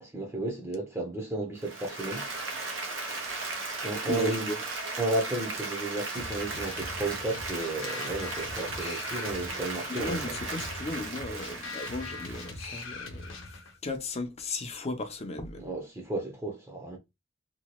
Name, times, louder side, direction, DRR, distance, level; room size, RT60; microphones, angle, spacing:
voice 1, 0.0-2.3 3.8-4.5 5.0-10.2 15.6-17.0, right 2 dB, 15° right, 0.6 m, -33 dB
Applause, 1.6-13.3, right 3 dB, 85° right, 0.9 m, -36 dB
voice 2, 4.1-4.6 9.9-13.4 13.8-15.7, left 2 dB, 35° left, 0.5 m, -35 dB
sound 1, 6.2-13.8, left 3 dB, 80° left, 0.7 m, -42 dB
2.9 x 2.2 x 2.9 m
head